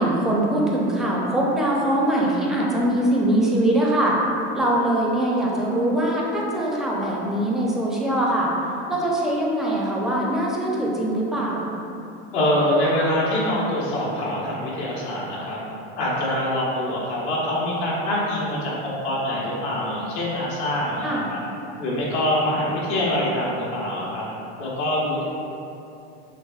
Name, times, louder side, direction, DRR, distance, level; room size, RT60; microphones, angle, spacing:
voice 1, 0.0-4.2 4.5-8.5 8.9-11.7 21.0-21.2, right 1 dB, ahead, -4 dB, 0.5 m, -22 dB
voice 2, 12.3-15.6 16.0-21.4 21.8-24.3 24.6-25.2, left 1 dB, 70° left, -6 dB, 1.4 m, -24 dB
6.3 x 2.5 x 2.4 m, 2.8 s
supercardioid pair, 115°, 33 cm